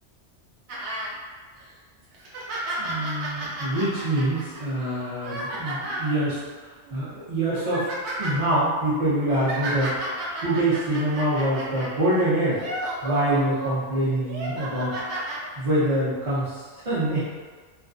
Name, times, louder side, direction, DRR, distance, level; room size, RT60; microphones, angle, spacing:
sound 1, 0.7-1.1 1.6-1.7 2.1-6.1 6.9-7.0 7.4-8.4 9.1-11.9 12.5-13.7 14.2-15.4 16.3-16.4, right 1 dB, 70° right, 0.9 m, -33 dB
voice 1, 2.8-10.0 10.4-12.6 13.0-14.9 15.6-17.2, right 1 dB, 35° right, -13 dB, 0.6 m, -25 dB
2.3 x 2.2 x 2.5 m, 1.4 s
omnidirectional pair, 1.2 m